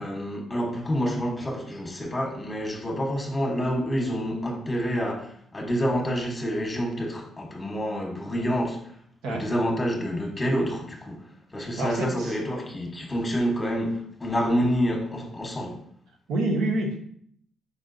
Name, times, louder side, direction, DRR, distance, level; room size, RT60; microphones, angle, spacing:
voice 1, 0.0-8.9 9.3-15.8, equal, 20° left, 1.1 m, -28 dB
voice 2, 11.6-12.3 16.3-17.0, right 1 dB, 90° right, 0.9 m, -27 dB
5.2 x 3.6 x 2.6 m
cardioid pair, 90°, 0 cm